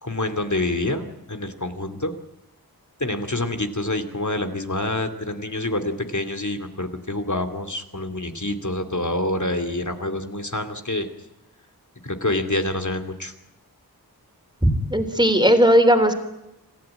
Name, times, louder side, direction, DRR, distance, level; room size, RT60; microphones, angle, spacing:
voice 1, 0.0-2.1 3.0-11.1 12.0-13.3, left 2 dB, 50° left, 6 dB, 2.7 m, -27 dB
voice 2, 14.6-16.2, equal, 10° right, 7 dB, 3.6 m, -17 dB
27.0 x 15.5 x 8.9 m, 0.90 s
wide cardioid pair, 45°, 37 cm